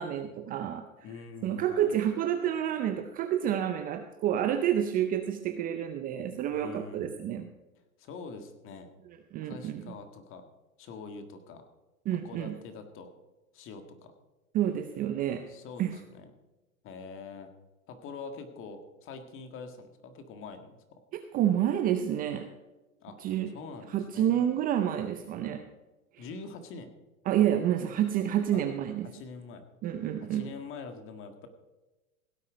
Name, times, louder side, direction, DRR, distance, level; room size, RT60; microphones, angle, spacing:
voice 1, 0.0-0.8 1.4-7.5 9.3-9.9 12.1-12.6 14.5-15.5 15.8-16.0 21.3-22.5 23.2-23.5 23.9-25.6 27.3-29.1 29.8-30.5, right 10 dB, 20° right, 8 dB, 0.5 m, -29 dB
voice 2, 1.0-2.0 6.5-7.2 8.0-8.9 9.4-10.4 10.8-11.7 12.1-13.1 13.5-14.1 15.5-16.3 16.8-17.5 17.9-20.8 23.0-23.2 23.5-24.4 26.2-26.9 28.5-28.6 29.0-29.6 30.2-31.5, left 4 dB, 30° left, 8 dB, 1.7 m, -44 dB
16.5 x 8.4 x 5.1 m, 1.1 s
hypercardioid pair, 135°, 42 cm